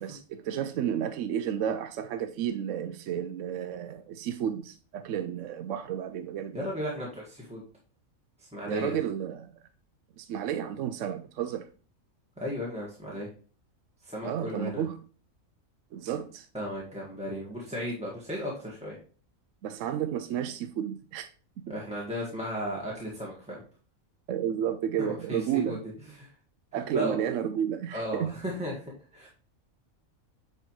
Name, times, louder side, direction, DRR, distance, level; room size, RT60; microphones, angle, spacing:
voice 1, 0.0-6.7 8.6-9.5 10.2-11.7 14.2-15.0 15.9-16.5 19.6-21.3 21.7-21.8 24.3-25.8 26.7-28.3, right 9 dB, 70° right, 0.8 m, -32 dB
voice 2, 6.5-7.6 8.4-8.9 12.4-13.3 14.0-14.8 16.5-18.9 21.7-23.6 25.0-25.8 26.1-26.3 26.7-27.2 27.9-29.3, equal, 5° right, 1.7 m, -35 dB
9.6 x 4.5 x 3.1 m
omnidirectional pair, 1.5 m